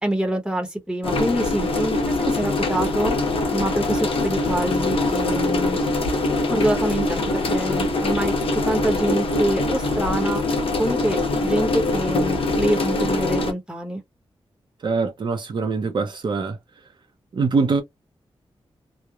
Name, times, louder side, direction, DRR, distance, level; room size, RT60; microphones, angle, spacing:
voice 1, 0.0-3.2 3.5-5.8 6.5-8.3 8.7-10.4 10.8-14.0, right 1 dB, 10° right, 0.9 m, -25 dB
sound 1, 1.0-13.5, left 2 dB, 65° left, 0.8 m, -23 dB
voice 2, 14.8-16.6 17.3-17.8, right 4 dB, 50° right, 0.6 m, -23 dB
2.9 x 2.0 x 2.3 m
wide cardioid pair, 175°, 10 cm